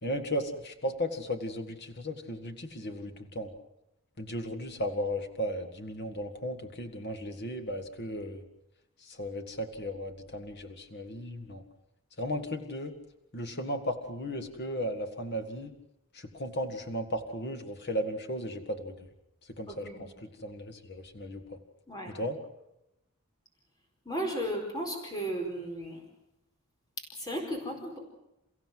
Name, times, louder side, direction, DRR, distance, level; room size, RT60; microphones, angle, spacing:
voice 1, 0.0-3.5 4.2-8.4 9.0-11.6 12.2-12.9 13.3-15.7 16.1-19.0 19.6-21.6 22.1-22.4, equal, 50° left, 6 dB, 2.1 m, -35 dB
voice 2, 19.7-20.0 21.9-22.1 24.0-26.0 27.2-28.0, right 1 dB, 20° left, 1 dB, 4.6 m, -35 dB
29.5 x 15.5 x 7.9 m, 0.88 s
head